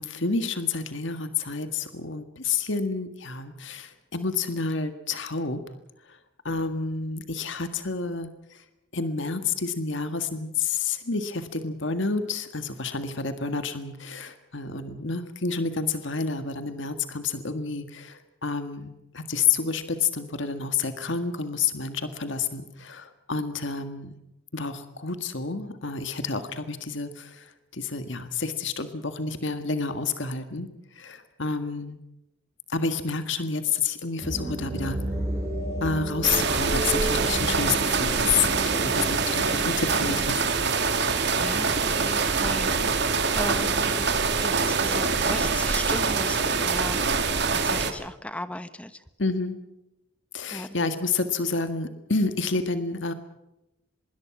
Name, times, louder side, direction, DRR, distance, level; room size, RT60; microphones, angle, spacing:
voice 1, 0.0-5.6 6.5-8.3 8.9-24.1 24.5-27.5 27.7-30.7 31.0-32.0 32.7-35.0 35.8-40.4 49.2-49.5 50.3-53.1, left 4 dB, 60° left, 9 dB, 1.8 m, -29 dB
sound 1, 34.2-40.5, right 1 dB, 15° right, 7.5 m, -33 dB
sound 2, 36.2-47.9, right 4 dB, 55° right, 2.6 m, -24 dB
voice 2, 41.1-47.0 47.6-49.0 50.5-50.8, left 1 dB, 5° left, 11 dB, 1.2 m, -37 dB
25.0 x 22.0 x 6.1 m, 0.92 s
head